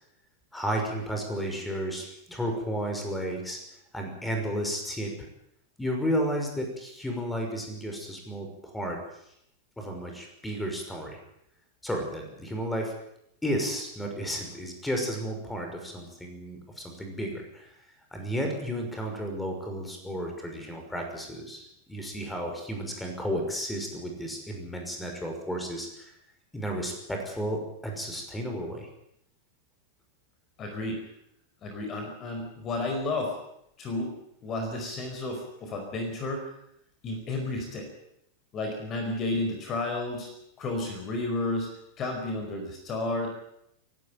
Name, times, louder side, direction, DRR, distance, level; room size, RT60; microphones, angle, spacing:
voice 1, 0.5-3.6 3.9-5.1 5.8-9.0 9.8-11.2 11.8-12.9 13.4-17.7 18.1-26.1 26.5-28.9, equal, 5° left, 3 dB, 6.0 m, -33 dB
voice 2, 30.6-31.1 31.6-33.4 33.8-34.2 34.4-36.5 37.0-37.9 38.5-40.3 40.6-43.3, left 2 dB, 30° left, 4 dB, 4.8 m, -32 dB
27.5 x 12.5 x 9.1 m, 0.77 s
figure-of-eight pair, 90°, 0 cm